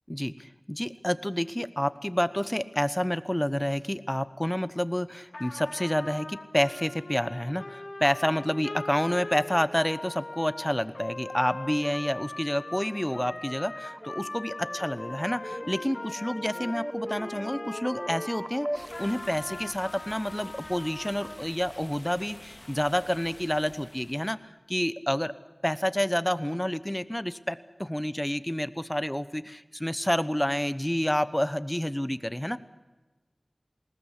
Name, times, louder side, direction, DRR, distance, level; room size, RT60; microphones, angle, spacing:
voice 1, 0.1-24.4 24.7-25.3 25.6-32.6, equal, 10° left, 13 dB, 1.0 m, -29 dB
Trumpet, 5.3-18.4 18.9-21.4, left 2 dB, 60° left, 3.7 m, -40 dB
sound 1, 12.1-19.4, right 1 dB, 20° right, 0.8 m, -40 dB
sound 2, 18.7-24.3, left 1 dB, 35° left, 3.0 m, -49 dB
20.0 x 19.0 x 8.2 m, 1.2 s
wide cardioid pair, 45°, 0 cm